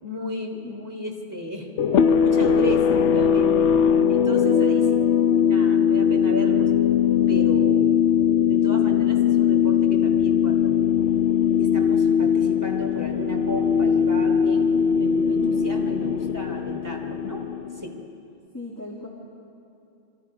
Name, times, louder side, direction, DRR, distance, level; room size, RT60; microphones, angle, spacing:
voice 1, 0.0-1.7 2.0-3.7 4.1-4.9 5.5-6.7 7.3-7.9 8.4-10.9 11.5-17.4 17.7-17.9, equal, 15° right, 2 dB, 3.1 m, -33 dB
sound 1, 1.8-18.1, left 7 dB, 90° left, 1.0 m, -20 dB
voice 2, 3.8-4.3 15.3-15.7 18.5-19.1, left 2 dB, 15° left, -3 dB, 2.5 m, -38 dB
27.0 x 26.5 x 4.9 m, 2.8 s
omnidirectional pair, 1.1 m